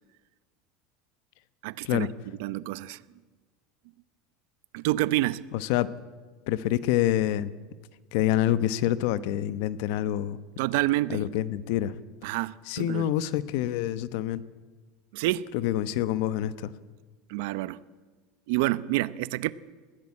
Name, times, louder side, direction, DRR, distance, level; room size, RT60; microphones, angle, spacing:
voice 1, 1.6-2.1 2.4-3.0 4.7-5.4 10.6-11.2 12.2-13.1 15.1-15.5 17.3-17.8 18.5-19.5, right 17 dB, 75° right, 0.7 m, -28 dB
voice 2, 5.5-5.9 6.5-7.5 8.1-10.4 11.1-11.9 12.7-14.4 15.5-16.7, left 13 dB, 70° left, 1.0 m, -26 dB
20.5 x 15.5 x 8.7 m
supercardioid pair, 130°, 0 cm